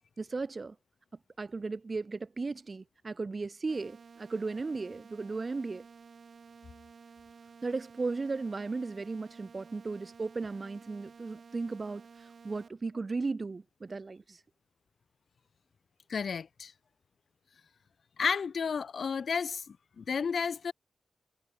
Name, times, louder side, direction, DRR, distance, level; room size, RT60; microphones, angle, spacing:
voice 1, 0.2-0.7 1.4-5.8 7.6-14.4, right 3 dB, 40° right, 0.9 m, -36 dB
sound 1, 3.7-12.7, right 5 dB, 65° right, 6.2 m, -53 dB
voice 2, 16.1-16.7 18.2-20.7, left 6 dB, 70° left, 0.6 m, -32 dB
cardioid pair, 85°, 0 cm